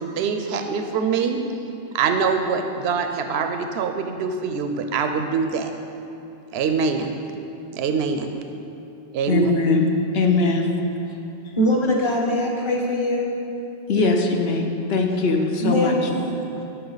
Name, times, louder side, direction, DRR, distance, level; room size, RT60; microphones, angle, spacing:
voice 1, 0.0-1.4 1.9-5.7 6.5-7.1 7.7-8.3 9.1-9.8, right 5 dB, 85° right, 6 dB, 0.8 m, -24 dB
voice 2, 9.3-9.9 10.1-10.7 13.9-15.9, left 3 dB, 75° left, 3 dB, 1.0 m, -21 dB
voice 3, 11.6-13.3 15.6-16.6, left 1 dB, 30° left, -1 dB, 1.1 m, -22 dB
13.5 x 5.6 x 4.0 m, 2.8 s
omnidirectional pair, 1.1 m